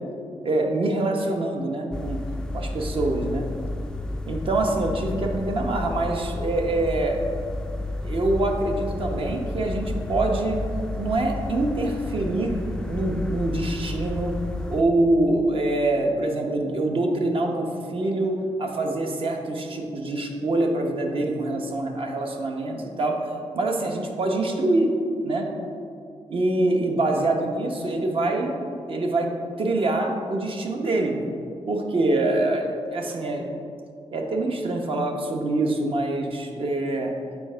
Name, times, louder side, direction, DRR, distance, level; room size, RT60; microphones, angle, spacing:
voice 1, 0.4-2.2 2.5-3.5 4.3-7.3 8.0-10.6 11.0-12.6 12.8-14.3 14.7-23.2 23.5-24.9 25.2-25.5 26.3-28.6 28.9-29.3 29.6-31.2 31.7-33.4 34.1-37.1, right 2 dB, 50° right, 2 dB, 0.9 m, -25 dB
sound 1, 1.9-14.8, left 2 dB, 5° left, 0.3 m, -31 dB
7.0 x 4.3 x 5.6 m, 2.4 s
wide cardioid pair, 155°, 12 cm